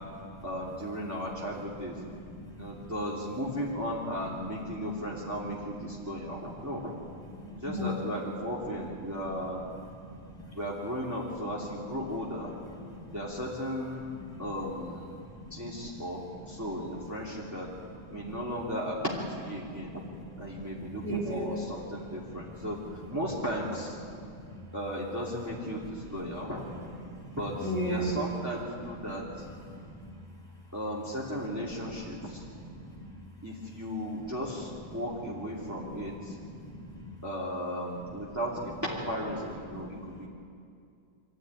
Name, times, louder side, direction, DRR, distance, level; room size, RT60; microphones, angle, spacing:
voice 1, 0.4-2.0 2.5-6.9 7.6-9.6 10.5-12.5 13.1-14.0 14.4-15.2 15.5-17.7 18.1-20.0 20.4-22.8 23.1-24.0 24.7-26.6 27.4-29.5 30.7-32.4 33.4-36.4 37.2-40.3, equal, 10° right, -6 dB, 2.8 m, -35 dB
voice 2, 2.0-2.9 6.0-6.1 7.3-7.9 10.0-10.6 12.9-13.2 14.3-14.5 15.5-15.7 18.1-18.2 19.6-20.7 21.0-21.6 21.9-22.7 24.1-24.4 25.9-26.1 27.0-28.1 29.6-30.1 31.8-32.2 32.6-33.1 34.5-34.6 35.6-37.1 39.7-40.3, equal, 15° left, -2 dB, 4.0 m, -39 dB
24.5 x 14.5 x 9.7 m, 2.4 s
omnidirectional pair, 1.8 m